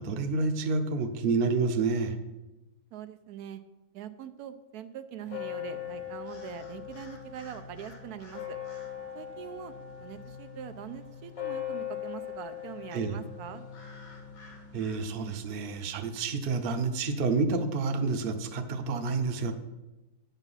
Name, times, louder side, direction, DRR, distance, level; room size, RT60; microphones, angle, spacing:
voice 1, 0.0-2.2 12.9-13.2 14.7-19.5, right 4 dB, 50° right, 7 dB, 0.8 m, -29 dB
voice 2, 2.9-3.6 3.9-8.6 9.1-9.7 10.0-13.6, right 9 dB, 85° right, 10 dB, 1.1 m, -43 dB
sound 1, 5.3-15.7, left 10 dB, 70° left, 1.6 m, -41 dB
9.1 x 5.7 x 5.5 m, 1.0 s
omnidirectional pair, 1.6 m